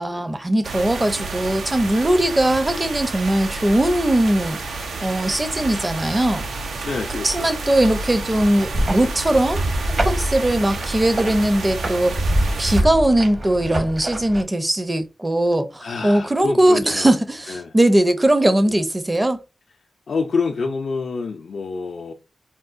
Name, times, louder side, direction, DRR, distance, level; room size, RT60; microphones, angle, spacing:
voice 1, 0.0-6.5 7.2-9.7 10.0-19.4, right 1 dB, 25° right, 0.6 m, -20 dB
sound 1, 0.6-12.8, right 3 dB, 85° right, 0.5 m, -30 dB
voice 2, 6.8-7.5 7.8-8.0 12.7-12.9 15.8-17.1 17.5-17.8 18.7-18.8 20.1-22.1, left 4 dB, 75° left, 0.4 m, -28 dB
sound 2, 8.3-14.4, right 1 dB, 60° right, 1.3 m, -25 dB
3.8 x 2.1 x 2.5 m
cardioid pair, 45°, 0 cm